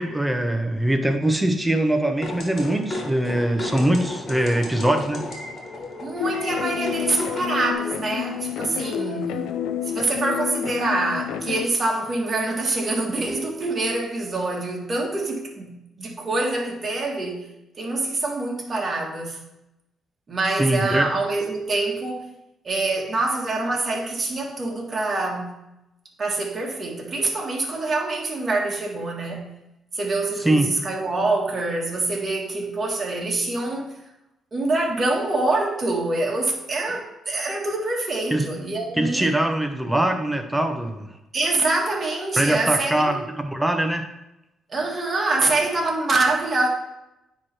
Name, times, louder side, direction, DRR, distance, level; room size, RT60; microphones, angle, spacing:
voice 1, 0.0-5.2 20.6-21.1 30.4-30.7 38.3-38.5 39.0-41.1 42.4-44.1, right 1 dB, 5° right, 0.9 m, -22 dB
sound 1, 2.2-7.7, left 2 dB, 50° left, 1.5 m, -34 dB
voice 2, 6.0-9.5 9.9-17.5 17.8-19.4 20.3-22.3 22.6-25.5 26.2-29.5 29.9-33.9 34.5-39.4 41.3-43.2 44.7-46.7, right 2 dB, 35° right, 1.7 m, -25 dB
sound 2, 6.2-11.7, left 9 dB, 90° left, 0.4 m, -29 dB
9.4 x 3.3 x 4.4 m
cardioid pair, 90°, 0 cm